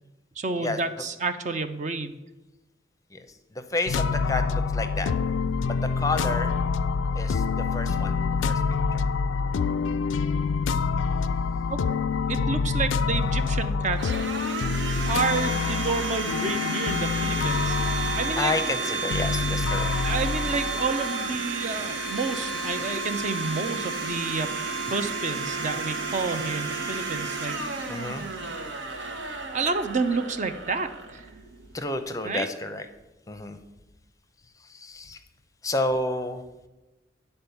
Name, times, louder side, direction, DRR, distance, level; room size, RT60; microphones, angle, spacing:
voice 1, 0.4-2.2 11.7-12.0 12.3-14.1 15.1-18.5 20.0-24.5 24.9-28.1 29.5-31.3 32.2-32.5, right 4 dB, 40° right, 9 dB, 0.5 m, -30 dB
voice 2, 3.1-5.1 5.6-6.6 7.1-8.2 8.4-8.6 8.9-9.0 15.1-15.6 18.3-19.9 20.5-20.6 27.9-28.2 31.7-32.9 33.3-33.6 34.6-35.2 35.6-36.4, left 2 dB, 20° left, 8 dB, 0.6 m, -30 dB
sound 1, 3.9-21.4, left 5 dB, 90° left, 0.3 m, -27 dB
Domestic sounds home sounds, 13.0-31.8, right 3 dB, 90° right, 1.3 m, -32 dB
9.4 x 4.3 x 6.9 m, 1.1 s
head